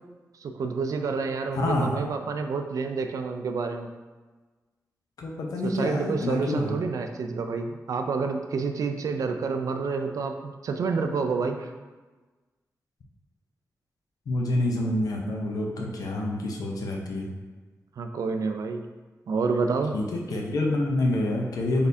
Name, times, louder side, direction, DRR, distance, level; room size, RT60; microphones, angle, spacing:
voice 1, 0.4-3.9 5.6-11.7 18.0-18.8 19.3-19.9, right 4 dB, 65° right, 5 dB, 0.3 m, -28 dB
voice 2, 1.5-2.0 5.2-6.8 14.3-17.3 19.9-21.9, left 1 dB, 80° left, 0 dB, 0.6 m, -27 dB
4.1 x 3.4 x 2.7 m, 1.3 s
wide cardioid pair, 170°, 6 cm